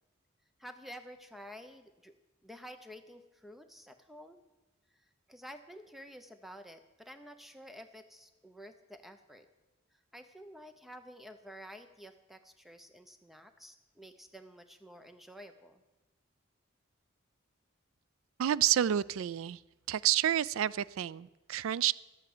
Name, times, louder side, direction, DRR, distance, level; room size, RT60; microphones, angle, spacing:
voice 1, 0.6-2.1 2.4-4.4 4.9-9.5 9.9-15.8, equal, ahead, 8 dB, 0.6 m, -51 dB
voice 2, 18.4-19.6 19.9-21.9, right 11 dB, 70° right, 20 dB, 0.3 m, -29 dB
12.0 x 8.3 x 6.7 m, 1.1 s
head